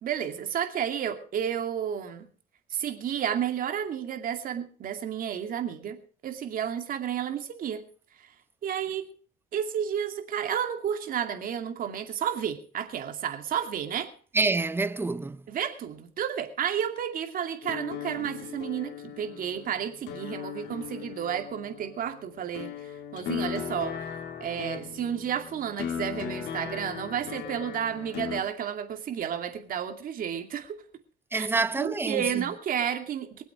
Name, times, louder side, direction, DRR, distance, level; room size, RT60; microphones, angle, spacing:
voice 1, 0.0-2.3 2.7-7.8 8.6-9.1 9.5-14.1 15.5-24.1 24.4-30.8 31.3-31.5 31.8-33.4, right 9 dB, 55° right, 2.4 m, -31 dB
voice 2, 14.3-15.4 31.3-32.5, right 3 dB, 15° right, 0.7 m, -27 dB
sound 1, 17.6-28.4, left 8 dB, 80° left, 2.1 m, -38 dB
23.0 x 8.1 x 5.0 m
cardioid pair, 110°, 17 cm